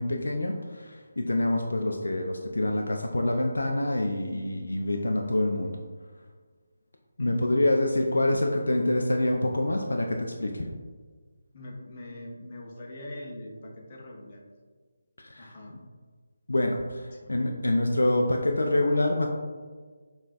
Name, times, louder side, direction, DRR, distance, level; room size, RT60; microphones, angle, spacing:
voice 1, 0.0-5.8 7.2-10.7 15.2-15.5 16.5-19.3, left 1 dB, 65° left, 2 dB, 0.3 m, -26 dB
voice 2, 11.5-14.4 15.4-15.8 17.1-17.3, left 1 dB, 35° left, -1 dB, 0.7 m, -42 dB
5.5 x 2.3 x 2.4 m, 1.5 s
figure-of-eight pair, 150°, 0 cm